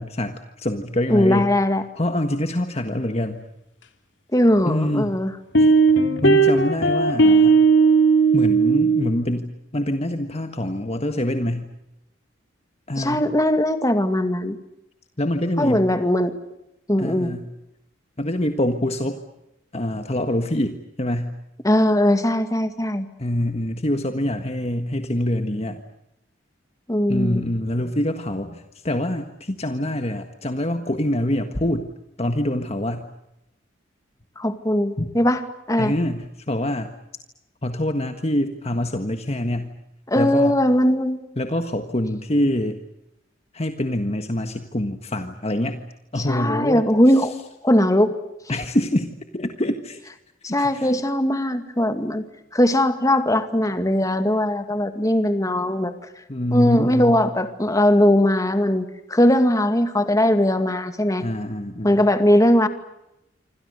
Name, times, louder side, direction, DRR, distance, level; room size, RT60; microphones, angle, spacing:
voice 1, 0.0-1.5 2.0-3.4 4.6-5.2 5.6-5.8 6.2-7.6 8.3-11.7 12.9-13.2 15.2-15.9 17.0-17.5 18.2-19.2 19.7-21.3 23.2-25.8 27.1-31.9 32.2-33.0 35.0-35.1 35.8-36.9 37.6-39.7 40.1-40.5 41.4-42.8 43.5-45.8 46.1-46.8 48.5-50.0 50.5-51.0 56.3-57.2 61.2-62.0, left 1 dB, 35° left, 7 dB, 1.6 m, -25 dB
voice 2, 1.1-1.8 4.3-5.3 13.0-14.6 15.6-16.3 16.9-17.3 21.6-23.1 26.9-27.5 34.4-35.9 40.1-41.2 46.2-47.3 47.6-48.1 50.4-52.2 52.5-55.9 56.5-61.2 61.8-62.7, left 1 dB, 15° left, 8 dB, 2.2 m, -19 dB
sound 1, 4.5-4.6 5.5-9.0, right 4 dB, 65° left, 3.1 m, -16 dB
27.0 x 26.0 x 6.7 m, 0.86 s
head